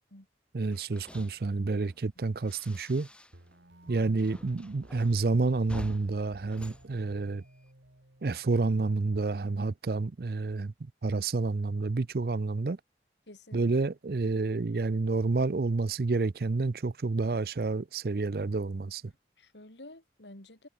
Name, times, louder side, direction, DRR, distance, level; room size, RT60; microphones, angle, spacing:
voice 1, 0.5-3.1 3.9-7.4 8.2-12.8 13.5-19.0, right 3 dB, 60° right, 0.5 m, -29 dB
sound 1, 0.6-3.6 3.8-7.7, equal, 5° left, 1.2 m, -48 dB
sound 2, 3.3-9.3, right 1 dB, 85° right, 3.8 m, -57 dB
voice 2, 13.3-13.7 19.1-20.7, left 1 dB, 90° left, 5.0 m, -51 dB
head